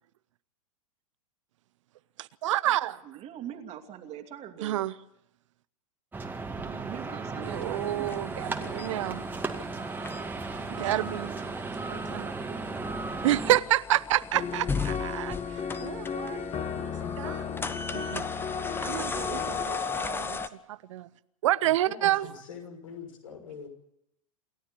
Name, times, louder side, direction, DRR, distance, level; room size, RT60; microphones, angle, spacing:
voice 1, 2.2-3.0 4.6-4.9 7.4-9.2 10.7-11.4 11.9-12.3 13.2-16.4 17.2-17.5 17.9-18.3 18.8-20.4 20.7-21.1 21.4-22.3, right 14 dB, 60° right, 0.8 m, -29 dB
voice 2, 3.0-4.8 6.6-8.1, right 10 dB, 35° right, 2.7 m, -42 dB
sound 1, 6.1-13.6, right 3 dB, 10° right, 2.2 m, -35 dB
sound 2, 7.4-20.5, left 4 dB, 10° left, 1.2 m, -37 dB
sound 3, 14.3-19.7, left 7 dB, 30° left, 2.4 m, -35 dB
voice 3, 21.8-23.7, left 6 dB, 70° left, 6.0 m, -44 dB
28.0 x 13.0 x 8.3 m
figure-of-eight pair, 95°, 18 cm